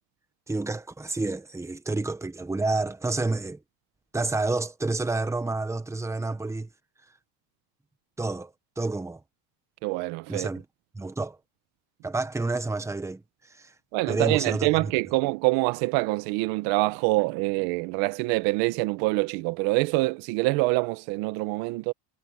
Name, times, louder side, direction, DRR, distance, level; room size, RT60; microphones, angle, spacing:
voice 1, 0.5-3.6 4.1-6.7 8.2-9.2 10.3-10.6 10.9-11.4 12.0-13.7 14.1-14.7, right 3 dB, 5° right, 1.2 m, -29 dB
voice 2, 9.8-10.5 13.9-21.9, right 22 dB, 70° right, 1.2 m, -25 dB
cardioid pair, 135°, 46 cm